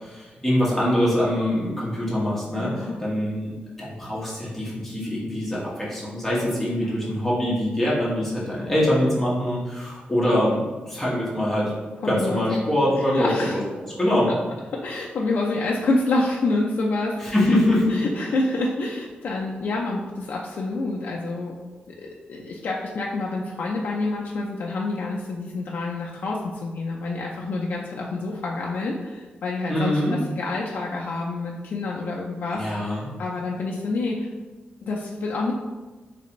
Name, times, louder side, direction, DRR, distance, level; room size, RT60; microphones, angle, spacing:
voice 1, 0.0-3.5 3.8-11.7 12.0-14.3 17.2-17.8 29.7-30.1 32.5-33.1, left 1 dB, 5° left, -7 dB, 1.1 m, -24 dB
voice 2, 2.6-3.0 6.8-6.9 12.0-12.6 13.1-13.6 14.7-17.6 17.9-21.5 21.9-34.3 34.8-35.5, left 2 dB, 65° left, -3 dB, 0.4 m, -28 dB
3.3 x 3.2 x 3.0 m, 1.3 s
wide cardioid pair, 140°, 4 cm